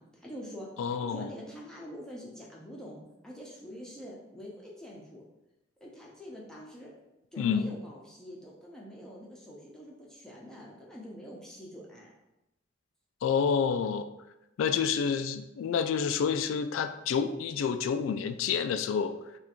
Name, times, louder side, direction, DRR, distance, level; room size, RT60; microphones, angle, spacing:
voice 1, 0.0-0.7 1.0-5.2 5.8-6.9 7.3-12.1, equal, 5° left, -4 dB, 0.7 m, -45 dB
voice 2, 0.8-1.3 7.4-7.7 13.2-14.1 14.6-19.1, left 6 dB, 85° left, 9 dB, 0.3 m, -28 dB
3.6 x 2.5 x 4.3 m, 0.90 s
head